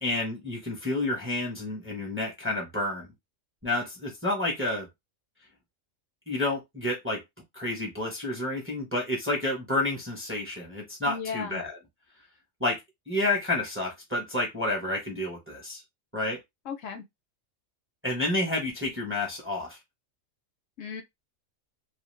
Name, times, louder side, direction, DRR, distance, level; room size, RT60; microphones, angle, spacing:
voice 1, 0.0-3.1 3.6-4.9 6.3-7.2 7.5-11.8 12.6-12.8 13.1-15.8 16.1-16.4 18.0-19.8, left 2 dB, 10° right, 0.7 m, -30 dB
voice 2, 11.1-11.6 16.7-17.0 20.8-21.0, left 6 dB, 75° left, 0.9 m, -35 dB
2.5 x 2.2 x 3.1 m
omnidirectional pair, 1.4 m